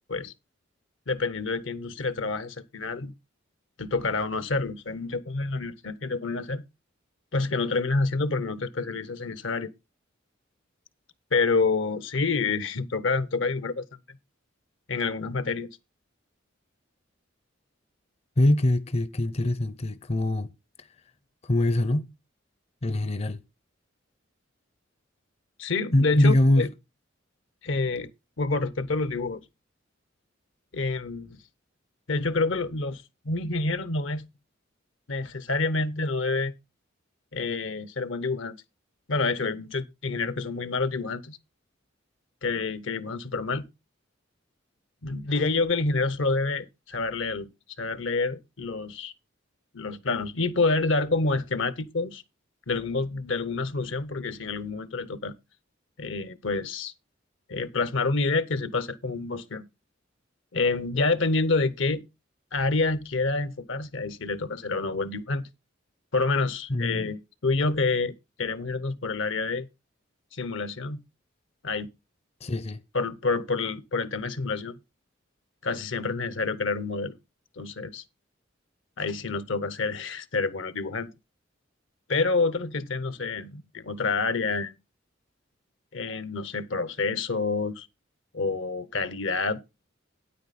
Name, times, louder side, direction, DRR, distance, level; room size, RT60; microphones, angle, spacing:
voice 1, 1.1-3.1 3.8-6.6 7.3-9.7 11.3-13.9 14.9-15.7 25.6-26.7 27.6-28.1 28.4-29.4 30.7-31.4 32.1-34.3 35.1-36.5 37.3-38.5 39.1-41.4 42.4-43.7 45.0-47.5 47.8-49.1 49.7-52.2 52.7-55.3 56.0-56.9 57.5-59.7 60.5-62.0 62.5-65.5 66.1-68.1 68.4-69.7 70.3-71.0 71.6-71.9 72.9-74.8 75.6-77.2 77.6-78.0 79.0-81.1 82.1-84.7 85.9-87.9 88.3-89.6, left 3 dB, 75° left, 0.8 m, -28 dB
voice 2, 18.4-20.5 20.8-20.9 21.4-22.1 22.8-23.4 25.9-26.7 66.7-67.1 72.4-72.8, left 1 dB, 35° left, 0.5 m, -23 dB
9.1 x 8.5 x 4.1 m
head